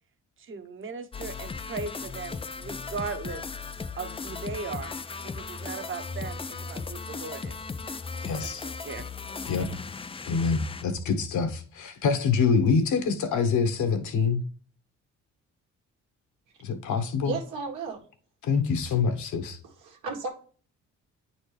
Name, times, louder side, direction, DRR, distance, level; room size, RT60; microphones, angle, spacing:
voice 1, 0.4-3.4 4.0-4.9 5.4-7.6 8.4-9.1, right 5 dB, 45° right, 1.0 m, -38 dB
sound 1, 1.1-10.8, left 4 dB, 20° left, 0.4 m, -37 dB
voice 2, 8.2-8.7 9.5-9.7 10.2-14.4 16.6-17.3 18.4-19.6, left 5 dB, 75° left, 1.2 m, -25 dB
voice 3, 17.2-18.0 19.6-20.3, right 4 dB, 85° right, 1.7 m, -34 dB
8.9 x 4.3 x 3.3 m
cardioid pair, 90°, 30 cm